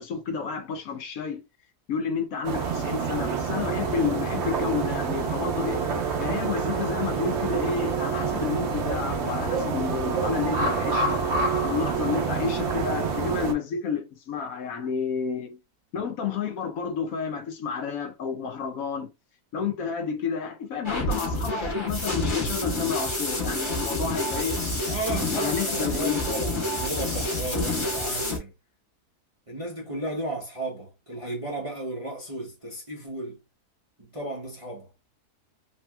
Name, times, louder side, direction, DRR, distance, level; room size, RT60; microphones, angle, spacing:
voice 1, 0.0-1.4 1.9-5.8 6.2-11.2 11.6-15.6 15.9-19.1 19.5-24.6 25.3-26.3, left 6 dB, 70° left, 1.0 m, -30 dB
sound 1, 2.4-13.5, right 5 dB, 55° right, 0.9 m, -27 dB
sound 2, 20.8-28.4, left 1 dB, 20° left, 1.0 m, -28 dB
voice 2, 24.9-28.5 29.5-33.4 34.0-34.9, right 1 dB, 30° right, 0.6 m, -34 dB
3.3 x 2.8 x 2.2 m
omnidirectional pair, 1.7 m